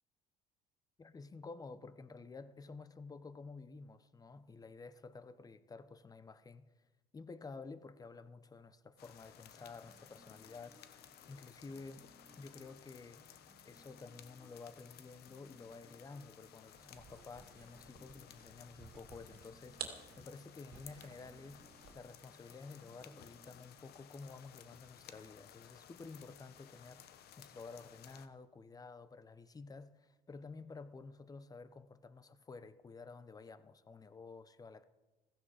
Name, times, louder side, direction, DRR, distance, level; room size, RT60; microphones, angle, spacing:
voice 1, 1.0-6.7 7.1-12.1 12.4-13.2 13.6-34.8, left 4 dB, 20° left, 0.8 m, -52 dB
sound 1, 9.0-28.3, left 10 dB, 70° left, 1.0 m, -59 dB
sound 2, 9.3-23.7, right 1 dB, 10° right, 1.4 m, -67 dB
sound 3, 16.7-22.2, right 8 dB, 65° right, 2.2 m, -52 dB
15.5 x 15.0 x 4.9 m
cardioid pair, 110°, 17 cm